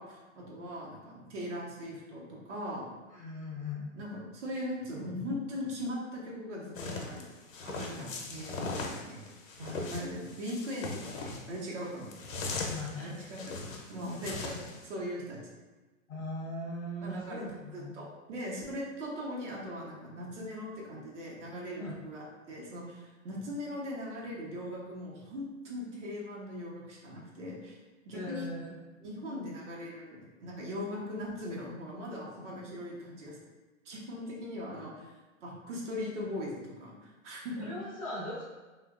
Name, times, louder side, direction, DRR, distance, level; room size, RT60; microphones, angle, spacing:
voice 1, 0.0-2.9 3.9-7.2 7.6-9.2 9.6-12.1 13.0-15.4 17.0-17.4 17.7-27.8 28.0-28.5 29.0-33.4 33.8-35.1 35.4-37.7, left 1 dB, 60° right, -4 dB, 1.0 m, -40 dB
voice 2, 3.1-3.9 8.0-8.1 12.6-13.1 16.1-18.0 21.8-21.9 28.1-28.8 37.6-38.4, left 1 dB, 25° left, -6 dB, 0.4 m, -39 dB
sound 1, 6.8-14.8, left 3 dB, 70° left, 0.7 m, -39 dB
2.9 x 2.4 x 2.4 m, 1.2 s
hypercardioid pair, 145°, 41 cm